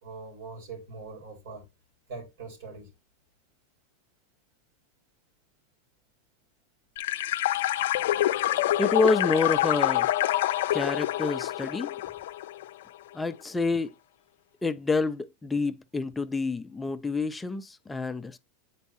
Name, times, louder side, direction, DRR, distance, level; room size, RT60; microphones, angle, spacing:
voice 1, 0.0-1.6 2.1-2.9, right 4 dB, 75° right, 3.4 m, -42 dB
sound 1, 7.0-12.7, left 14 dB, 75° left, 0.4 m, -26 dB
voice 2, 8.8-10.1 10.7-11.9 13.1-13.9 14.6-18.4, left 3 dB, 10° left, 0.4 m, -28 dB
8.2 x 4.4 x 2.7 m
hypercardioid pair, 110°, 0 cm